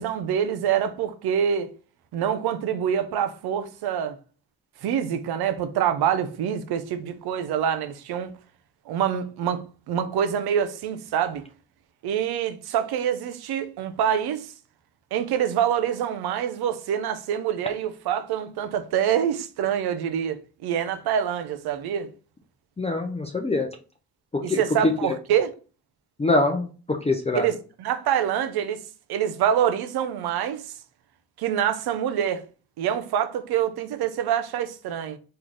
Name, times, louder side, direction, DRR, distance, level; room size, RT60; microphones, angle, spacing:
voice 1, 0.0-1.7 2.1-4.2 4.8-8.3 8.9-11.4 12.0-14.5 15.1-22.1 24.4-25.5 27.3-28.8 29.1-30.7 31.4-32.4 32.8-35.2, right 9 dB, 90° right, 0.5 m, -26 dB
voice 2, 22.8-23.8 24.3-24.6 26.2-27.5, left 2 dB, 15° left, 0.5 m, -24 dB
3.2 x 2.2 x 3.7 m
cardioid pair, 55°, 37 cm